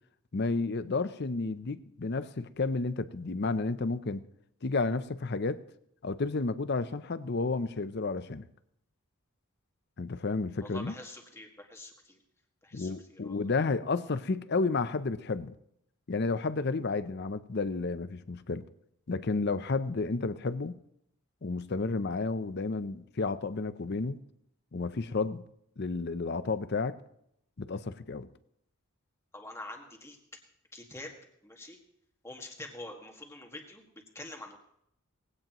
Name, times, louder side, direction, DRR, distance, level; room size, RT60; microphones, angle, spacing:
voice 1, 0.3-4.2 4.6-5.6 6.0-8.5 10.0-10.9 12.7-15.5 16.1-18.6 19.1-20.8 21.4-24.2 24.7-25.4 25.8-27.0 27.6-28.3, left 3 dB, 50° left, 0.6 m, -31 dB
voice 2, 10.6-12.2 12.6-13.4 29.3-30.2 30.7-31.1 31.4-31.8 32.2-34.6, left 2 dB, 10° left, 1.8 m, -45 dB
20.0 x 16.5 x 3.0 m
head